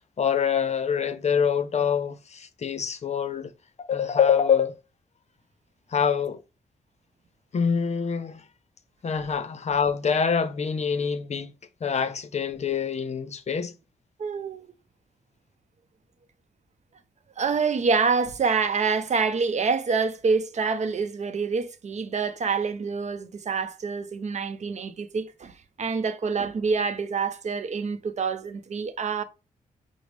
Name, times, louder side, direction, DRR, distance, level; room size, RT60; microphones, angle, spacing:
voice 1, 0.2-3.5 3.8-4.8 5.9-6.4 7.5-8.5 9.0-11.5 11.8-13.7, left 7 dB, 50° left, 0.6 m, -25 dB
voice 2, 14.2-14.7 17.4-25.5 25.8-29.2, right 5 dB, 50° right, 0.6 m, -26 dB
6.0 x 2.0 x 3.2 m
cardioid pair, 65°, 15 cm